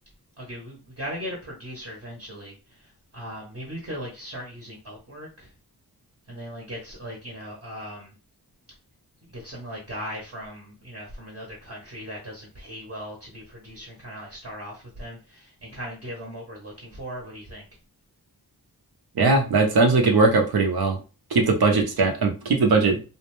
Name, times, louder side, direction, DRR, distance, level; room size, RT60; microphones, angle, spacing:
voice 1, 0.4-2.5 3.1-5.5 6.3-8.1 9.3-17.6, equal, 35° right, -2 dB, 0.8 m, -38 dB
voice 2, 19.2-21.0 21.3-23.0, right 3 dB, 65° right, 3 dB, 0.6 m, -19 dB
2.5 x 2.1 x 3.0 m, 0.32 s
wide cardioid pair, 85°, 40 cm